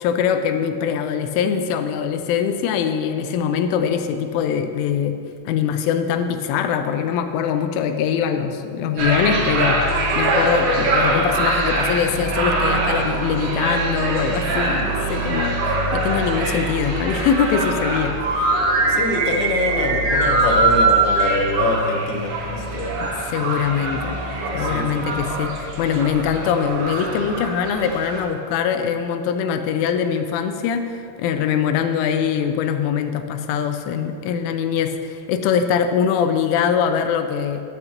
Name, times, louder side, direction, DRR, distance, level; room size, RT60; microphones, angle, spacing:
voice 1, 0.0-5.2 5.5-18.5 23.0-24.2 24.5-37.6, left 7 dB, 85° left, 7 dB, 3.1 m, -22 dB
sound 1, 9.0-28.2, right 2 dB, 65° right, 3.1 m, -22 dB
voice 2, 18.9-23.0 24.5-24.8, left 3 dB, 70° left, 1 dB, 2.4 m, -24 dB
14.5 x 12.0 x 3.0 m, 2.6 s
omnidirectional pair, 5.5 m